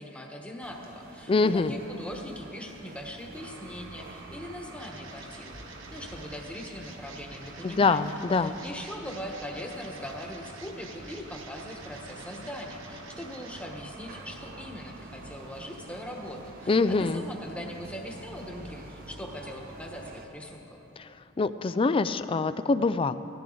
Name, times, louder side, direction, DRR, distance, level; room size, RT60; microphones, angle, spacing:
voice 1, 0.0-8.0 8.3-20.8, equal, 5° left, 0 dB, 1.2 m, -41 dB
sound 1, 0.6-20.3, right 2 dB, 45° right, 0.9 m, -47 dB
voice 2, 1.3-1.7 7.6-8.5 16.7-17.2 21.0-21.1 21.4-23.1, left 3 dB, 25° left, 12 dB, 0.3 m, -24 dB
sound 2, 3.4-19.4, right 3 dB, 70° right, 1.2 m, -49 dB
17.5 x 14.0 x 3.9 m, 3.0 s
head